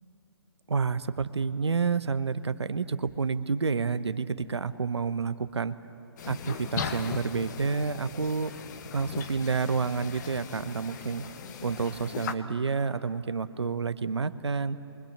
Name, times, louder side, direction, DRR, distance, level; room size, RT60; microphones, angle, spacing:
voice 1, 0.7-5.7 6.3-8.5 8.9-11.2 11.6-14.8, right 5 dB, 75° right, 13 dB, 1.1 m, -29 dB
sound 1, 6.2-12.3, left 7 dB, 40° left, 1.4 m, -38 dB
29.0 x 24.0 x 7.3 m, 2.9 s
figure-of-eight pair, 140°, 14 cm